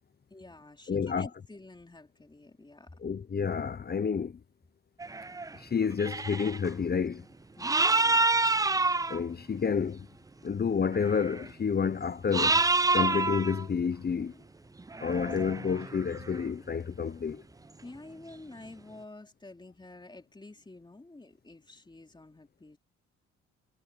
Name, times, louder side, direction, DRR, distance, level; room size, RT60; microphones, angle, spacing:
voice 1, 0.3-2.9 7.6-8.4 14.7-15.3 17.8-22.8, left 2 dB, 15° left, 3.2 m, -49 dB
voice 2, 0.9-1.3 3.0-4.4 5.5-7.3 9.1-10.1 10.4-12.7 12.9-14.3 15.0-17.4, left 6 dB, 30° left, 0.9 m, -29 dB
sound 1, 5.0-5.6 5.9-6.7 7.6-9.2 10.9-11.5 12.3-13.7 14.8-16.5, right 3 dB, 10° right, 0.5 m, -27 dB
cardioid pair, 90°, 30 cm